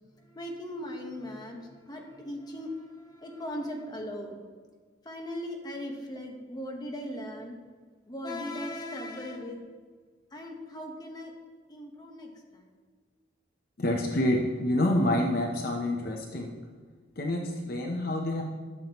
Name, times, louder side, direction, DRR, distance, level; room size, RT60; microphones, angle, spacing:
voice 1, 0.1-4.4 5.0-7.6 8.1-9.6 10.3-11.3 11.7-12.7, left 1 dB, 20° left, 1 dB, 1.1 m, -38 dB
voice 2, 13.8-16.5 17.2-18.4, left 1 dB, 50° left, 1 dB, 0.8 m, -27 dB
12.0 x 7.3 x 3.0 m, 1.5 s
head